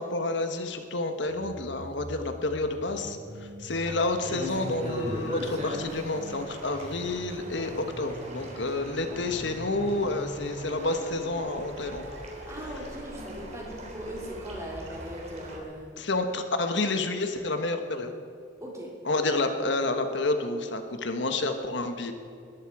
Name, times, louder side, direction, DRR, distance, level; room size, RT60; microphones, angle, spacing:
voice 1, 0.0-12.1 16.0-18.1 19.0-22.1, left 2 dB, 65° left, 7 dB, 1.3 m, -29 dB
sound 1, 1.3-15.0, equal, 85° right, 2.5 m, -44 dB
sound 2, 3.7-15.6, equal, 35° right, 3.7 m, -40 dB
voice 2, 9.1-9.7 12.5-15.9 18.6-18.9, equal, 15° right, -2 dB, 3.7 m, -40 dB
21.0 x 14.0 x 4.9 m, 2.6 s
head